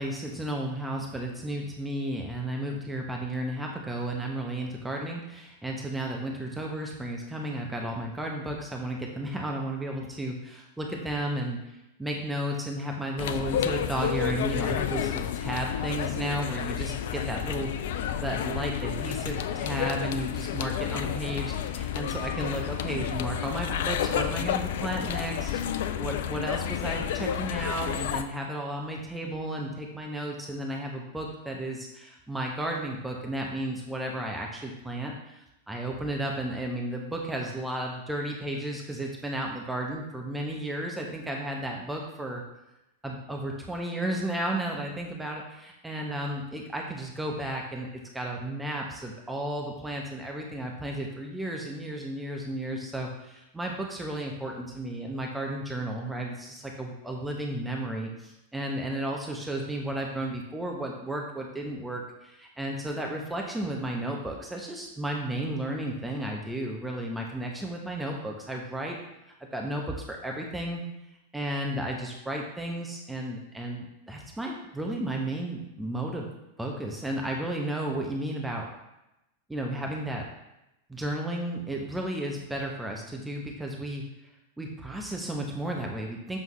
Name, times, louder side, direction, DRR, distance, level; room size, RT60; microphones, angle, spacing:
voice 1, 0.0-11.6 12.0-42.4 43.0-47.9 48.1-69.0 69.5-70.8 71.3-76.3 76.6-78.7 79.5-80.2 80.9-84.0 84.6-86.4, right 1 dB, 5° right, 0 dB, 0.9 m, -33 dB
sound 1, 13.2-28.2, left 9 dB, 55° left, 0.4 m, -30 dB
7.5 x 5.4 x 3.1 m, 0.90 s
figure-of-eight pair, 90°, 0 cm